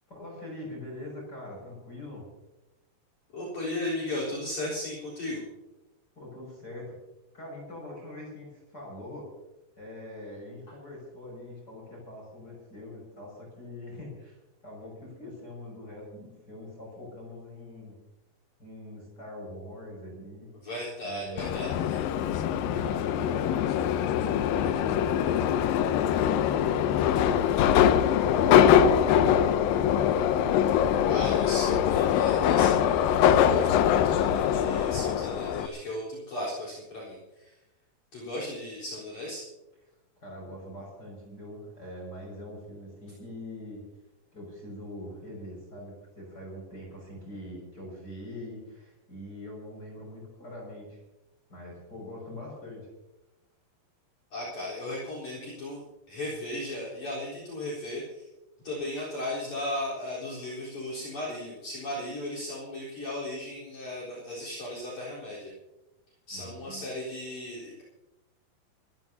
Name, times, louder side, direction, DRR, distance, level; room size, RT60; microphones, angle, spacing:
voice 1, 0.1-2.2 6.1-6.9 7.3-9.3 9.8-18.0 18.6-20.5 21.0-21.7 22.5-23.9 40.2-43.8 44.3-51.0 51.5-52.9 66.3-66.8, left 1 dB, 25° left, -3 dB, 6.7 m, -43 dB
voice 2, 3.3-5.4 20.6-22.0 31.1-37.5 38.1-39.4 54.3-58.3 58.6-65.5 66.3-67.8, left 1 dB, 45° left, -5 dB, 5.4 m, -36 dB
Subway metro underground, 21.4-35.7, left 9 dB, 75° left, 2.1 m, -23 dB
27.5 x 14.5 x 2.8 m, 0.99 s
omnidirectional pair, 4.7 m